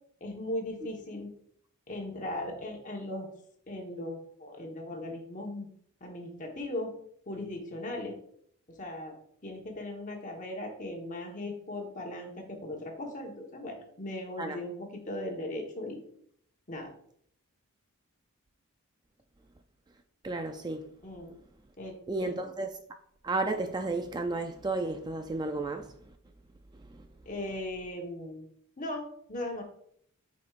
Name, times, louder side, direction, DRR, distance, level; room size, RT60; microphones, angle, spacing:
voice 1, 0.2-1.3 1.9-3.3 3.7-5.7 6.0-6.9 7.3-8.2 8.7-9.2 9.4-16.0 16.7-16.9 21.0-21.3 21.8-22.3 27.2-28.4 28.8-29.6, left 1 dB, 35° left, 1.2 m, -38 dB
voice 2, 20.2-20.9 22.1-22.7 23.2-25.9 26.9-27.0, right 2 dB, 20° right, 0.3 m, -32 dB
7.8 x 5.2 x 2.5 m
head